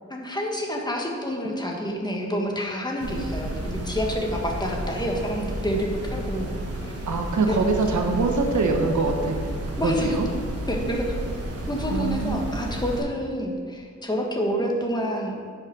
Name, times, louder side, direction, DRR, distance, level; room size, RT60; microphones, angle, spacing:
voice 1, 0.1-6.5 6.8-6.9 7.4-7.6 9.8-10.2 10.7-11.2 11.7-15.4, equal, 15° left, -1 dB, 1.4 m, -28 dB
sound 1, 3.0-13.0, right 1 dB, 55° right, 1.4 m, -32 dB
voice 2, 7.1-9.5 9.8-10.3 11.9-12.5, right 3 dB, 85° right, 3 dB, 1.1 m, -24 dB
10.0 x 5.7 x 4.6 m, 2.2 s
wide cardioid pair, 115°, 29 cm